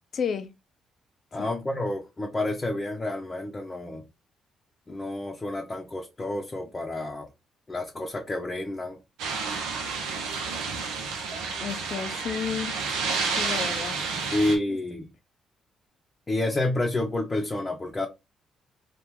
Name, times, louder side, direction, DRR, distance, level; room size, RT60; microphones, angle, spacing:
voice 1, 0.1-0.5 1.4-1.5 11.6-12.8 13.4-14.0, left 7 dB, 60° left, 0.5 m, -31 dB
voice 2, 1.3-4.0 4.9-7.3 7.7-9.0 14.3-15.1 16.3-18.1, left 2 dB, 30° left, 0.7 m, -29 dB
sound 1, 9.2-14.6, right 4 dB, 90° right, 0.7 m, -30 dB
2.9 x 2.5 x 3.5 m
supercardioid pair, 60°, 0 cm